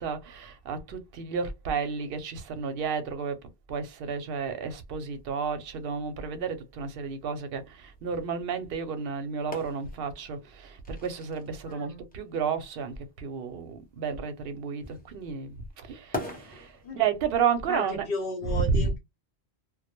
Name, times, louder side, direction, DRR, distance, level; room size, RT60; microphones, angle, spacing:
voice 1, 0.0-3.4 3.7-18.0 18.4-18.9, right 6 dB, 60° right, 0.7 m, -31 dB
sound 1, 4.1-17.8, left 1 dB, 10° left, 0.5 m, -45 dB
voice 2, 11.7-12.1 16.8-17.0 17.7-19.0, left 1 dB, 60° left, 0.9 m, -34 dB
2.2 x 2.0 x 2.9 m
omnidirectional pair, 1.2 m